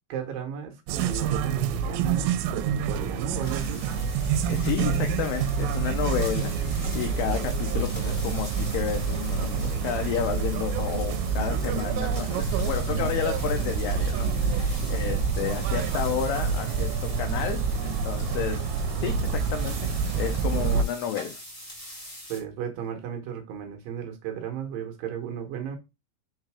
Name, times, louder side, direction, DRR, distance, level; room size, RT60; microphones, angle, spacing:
voice 1, 0.1-3.9 19.0-19.2 22.3-25.8, right 8 dB, 70° right, 2.5 m, -34 dB
sound 1, 0.9-20.9, right 6 dB, 85° right, 2.8 m, -27 dB
sound 2, 3.4-22.4, left 1 dB, 45° left, 0.4 m, -44 dB
voice 2, 4.5-18.6 19.0-19.8 20.2-21.4, left 10 dB, 75° left, 2.5 m, -31 dB
6.3 x 3.9 x 4.8 m
omnidirectional pair, 5.1 m